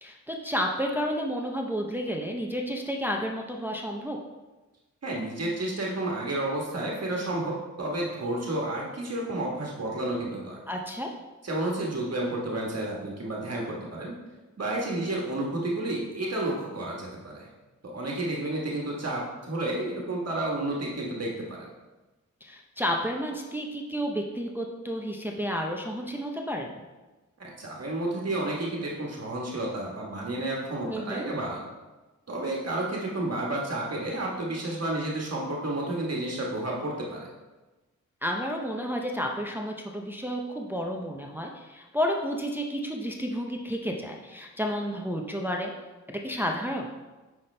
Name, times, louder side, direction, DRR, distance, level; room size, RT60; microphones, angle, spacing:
voice 1, 0.0-4.2 10.7-11.1 22.4-26.9 30.8-31.3 38.2-45.7 46.1-46.9, equal, 5° right, 1 dB, 0.6 m, -31 dB
voice 2, 5.0-10.6 11.4-14.1 14.6-17.5 17.8-21.7 27.4-31.6 32.3-37.3, right 1 dB, 55° right, -2 dB, 1.3 m, -31 dB
9.5 x 5.8 x 3.3 m, 1.2 s
wide cardioid pair, 165°, 31 cm